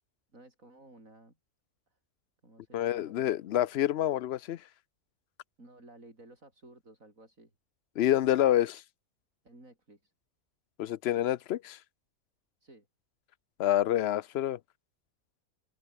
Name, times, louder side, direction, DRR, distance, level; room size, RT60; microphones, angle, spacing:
voice 1, 0.3-1.4 1.9-2.0 2.4-3.4 5.6-7.5 9.4-10.1 12.6-12.9, right 2 dB, 70° right, 7.7 m, -55 dB
voice 2, 2.7-4.6 8.0-8.8 10.8-11.8 13.6-14.6, left 12 dB, 60° left, 0.7 m, -27 dB
omnidirectional pair, 1.5 m